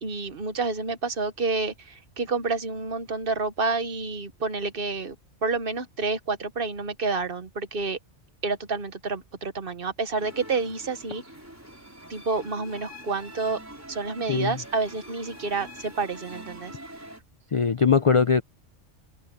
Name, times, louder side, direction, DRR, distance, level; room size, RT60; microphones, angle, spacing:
voice 1, 0.0-5.1 5.4-8.0 8.4-11.2 12.1-13.6 13.9-16.8, right 3 dB, 50° right, 1.3 m, -29 dB
sound 1, 10.2-17.2, equal, 10° right, 5.1 m, -44 dB
voice 2, 14.3-14.6 17.5-18.4, left 5 dB, 50° left, 0.4 m, -21 dB
omnidirectional pair, 1.3 m